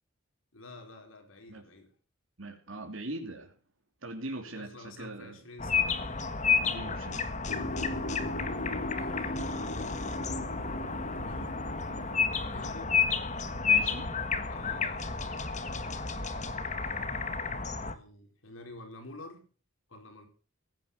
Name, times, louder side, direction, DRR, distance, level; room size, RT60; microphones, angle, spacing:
voice 1, 0.5-1.9 4.4-6.3 8.4-9.4 10.8-11.7 12.5-13.0 14.4-19.5 19.9-20.3, left 2 dB, 85° left, 4.6 m, -50 dB
voice 2, 2.4-3.6 4.0-5.4 6.6-7.3 13.6-14.1, right 2 dB, 80° right, 3.1 m, -41 dB
sound 1, 5.6-17.9, left 5 dB, 35° left, 1.7 m, -31 dB
sound 2, 7.5-12.5, left 1 dB, 70° left, 3.7 m, -38 dB
17.0 x 9.8 x 6.7 m
head